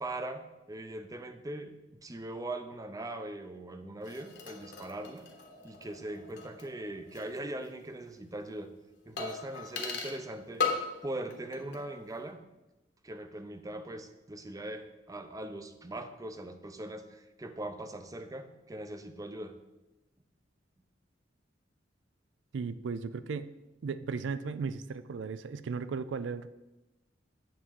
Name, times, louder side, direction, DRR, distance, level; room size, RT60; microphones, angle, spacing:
voice 1, 0.0-5.3 5.6-8.7 9.1-10.6 11.0-12.4 13.0-19.5, right 1 dB, 20° right, 8 dB, 0.6 m, -41 dB
sound 1, 4.0-7.4 7.6-7.7 9.2-10.3 10.6-11.0 11.3-11.9 12.1-12.2, left 4 dB, 65° left, 1.2 m, -38 dB
voice 2, 22.5-23.5 23.8-26.5, right 5 dB, 75° right, 13 dB, 0.4 m, -36 dB
8.6 x 3.7 x 6.9 m, 1.0 s
head